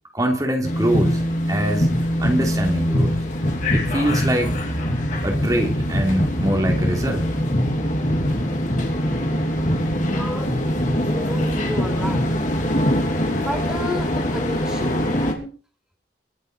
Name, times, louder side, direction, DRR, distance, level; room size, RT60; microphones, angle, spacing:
voice 1, 0.1-1.9 2.2-3.2 3.7-4.5 5.2-7.2, right 1 dB, 20° right, 2 dB, 3.0 m, -23 dB
sound 1, 0.6-15.3, equal, 45° left, 3.5 m, -22 dB
voice 2, 10.1-10.5 11.0-12.3 13.3-15.5, equal, 5° right, 2 dB, 4.3 m, -32 dB
23.5 x 8.2 x 5.3 m, 0.39 s
head